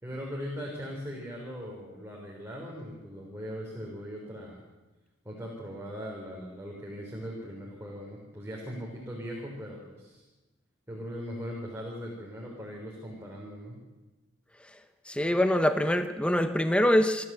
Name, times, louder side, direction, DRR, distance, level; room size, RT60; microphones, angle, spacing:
voice 1, 0.0-4.6 5.3-10.2 10.9-13.8, equal, 10° right, -2 dB, 3.7 m, -39 dB
voice 2, 15.0-17.3, left 1 dB, 5° left, 8 dB, 1.0 m, -24 dB
28.0 x 12.5 x 7.5 m, 1.1 s
head